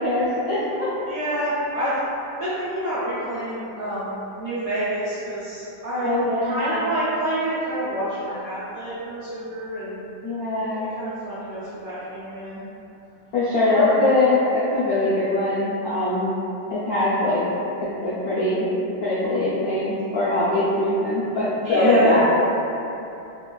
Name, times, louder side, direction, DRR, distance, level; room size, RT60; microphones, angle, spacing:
voice 1, 0.0-0.9 6.0-6.9 10.2-10.9 13.3-16.3 16.7-17.4 18.0-18.7 19.0-22.2, left 2 dB, 80° left, -13 dB, 0.8 m, -22 dB
voice 2, 1.0-1.9 2.4-6.1 6.5-10.0 11.0-12.6 13.7-14.0 21.6-22.1, right 1 dB, 75° right, -12 dB, 0.8 m, -27 dB
3.3 x 2.2 x 2.2 m, 2.9 s
omnidirectional pair, 2.2 m